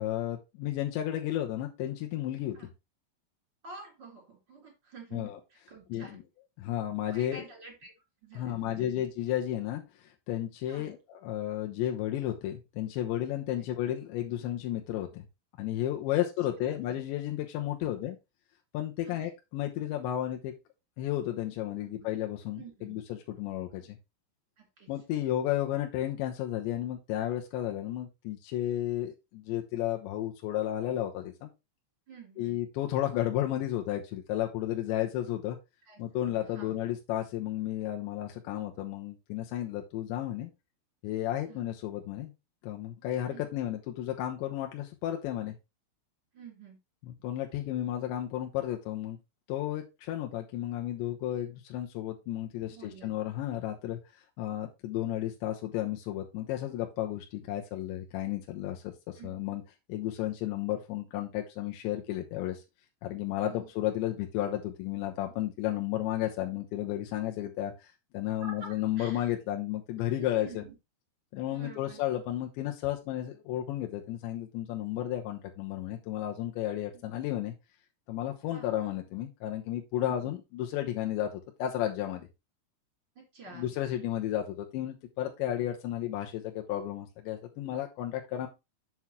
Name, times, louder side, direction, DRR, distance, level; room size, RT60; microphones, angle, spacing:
voice 1, 0.0-2.6 5.1-5.4 5.9-6.2 6.6-7.4 8.4-15.3 15.6-18.2 18.7-20.5 21.0-24.0 24.9-31.5 32.4-35.6 36.0-40.5 41.0-42.3 42.6-45.6 47.1-49.2 49.5-54.0 54.4-59.6 59.9-62.6 63.0-70.6 71.3-77.5 78.1-81.3 81.6-82.3 83.5-88.5, left 12 dB, 75° left, 2 dB, 3.0 m, -33 dB
voice 2, 3.6-6.2 7.1-7.9 8.2-8.9 10.7-10.9 16.1-16.2 16.6-16.8 17.8-17.9 19.0-19.3 21.8-22.1 22.6-23.0 24.6-24.9 32.1-32.6 35.8-36.8 41.5-41.6 43.3-43.5 46.3-46.8 52.7-53.1 59.2-59.6 63.5-63.7 68.4-69.3 70.2-70.7 71.5-72.0 78.5-78.7 80.0-80.4 83.3-83.8, right 4 dB, 25° right, 0 dB, 3.8 m, -49 dB
8.0 x 7.2 x 3.0 m, 0.24 s
omnidirectional pair, 5.8 m